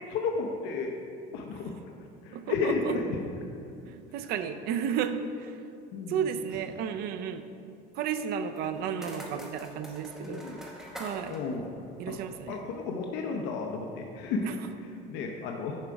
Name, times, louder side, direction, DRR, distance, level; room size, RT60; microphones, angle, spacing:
voice 1, 0.1-1.0 1.3-1.9 2.2-3.2 5.9-6.1 10.2-10.6 11.3-11.7 12.1-12.2 12.5-14.5 15.1-15.8, left 4 dB, 65° left, 2 dB, 0.7 m, -32 dB
voice 2, 2.3-3.0 3.9-5.6 6.1-7.5 8.0-10.4 11.0-11.4 12.0-12.6 14.4-14.7, right 7 dB, 55° right, 9 dB, 0.5 m, -33 dB
sound 1, 8.6-12.7, equal, ahead, 0.9 m, -46 dB
7.3 x 5.0 x 4.6 m, 2.6 s
cardioid pair, 150°, 20 cm